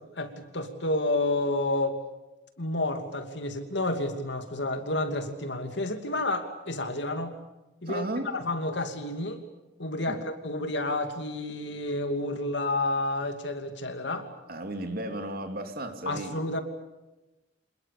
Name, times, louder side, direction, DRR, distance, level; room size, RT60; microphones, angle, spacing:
voice 1, 0.2-2.0 2.6-7.4 7.8-9.4 9.8-14.3 16.1-16.6, left 2 dB, 60° left, 7 dB, 2.8 m, -30 dB
voice 2, 7.9-8.3 10.1-10.2 14.5-16.4, right 1 dB, 50° right, 6 dB, 2.9 m, -34 dB
27.0 x 21.0 x 8.5 m, 1.0 s
head